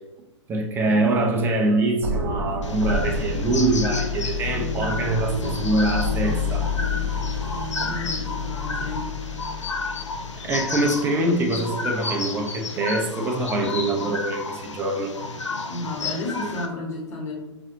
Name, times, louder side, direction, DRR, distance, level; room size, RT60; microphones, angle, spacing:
voice 1, 0.5-6.8 10.4-15.1, right 2 dB, 15° right, 2 dB, 0.5 m, -24 dB
sound 1, 2.0-10.9, left 3 dB, 60° right, 0.6 m, -28 dB
sound 2, 2.6-16.7, left 3 dB, 75° left, 0.5 m, -32 dB
voice 2, 7.8-9.0 15.7-17.3, left 2 dB, 20° left, -3 dB, 1.1 m, -32 dB
4.9 x 2.6 x 2.7 m, 1.1 s
figure-of-eight pair, 115°, 15 cm